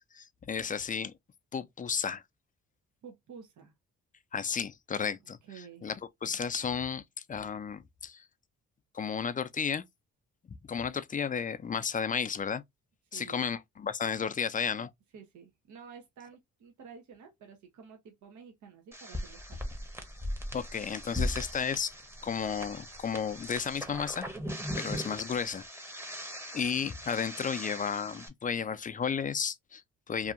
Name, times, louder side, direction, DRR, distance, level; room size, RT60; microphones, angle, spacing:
voice 1, 0.1-1.1 1.5-2.2 4.3-5.4 5.8-8.2 8.9-9.8 10.5-12.6 13.1-14.9 20.5-21.9 22.2-24.3 24.8-25.6 26.5-30.3, left 6 dB, 25° left, 0.4 m, -33 dB
voice 2, 3.0-3.7 5.5-5.9 13.1-13.5 14.2-14.3 15.1-19.6, right 6 dB, 70° right, 0.8 m, -50 dB
sound 1, 18.9-28.3, equal, 10° right, 0.8 m, -39 dB
2.7 x 2.4 x 2.4 m
cardioid pair, 65°, 31 cm